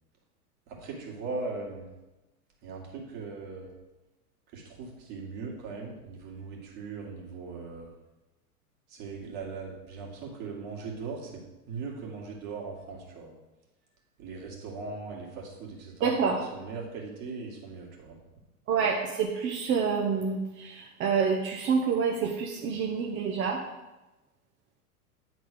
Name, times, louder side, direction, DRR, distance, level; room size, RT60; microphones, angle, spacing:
voice 1, 0.7-1.9 2.6-3.7 4.5-7.9 8.9-13.3 14.2-18.2, right 4 dB, 45° right, -1 dB, 2.1 m, -39 dB
voice 2, 16.0-16.4 18.7-23.6, right 6 dB, 25° right, 0 dB, 0.7 m, -27 dB
9.2 x 4.0 x 5.0 m, 1.1 s
figure-of-eight pair, 95°, 45 cm